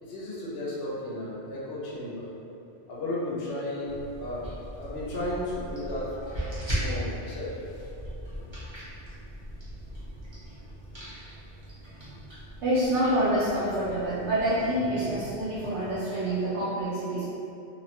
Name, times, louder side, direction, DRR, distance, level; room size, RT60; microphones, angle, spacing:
voice 1, 0.0-2.3 2.9-4.4 4.8-6.2 6.7-7.9, left 1 dB, 65° left, -7 dB, 0.8 m, -34 dB
sound 1, 3.8-16.0, equal, 30° right, 0.7 m, -39 dB
voice 2, 12.6-17.2, right 1 dB, 75° right, -11 dB, 0.9 m, -27 dB
2.7 x 2.1 x 2.8 m, 2.7 s
omnidirectional pair, 1.2 m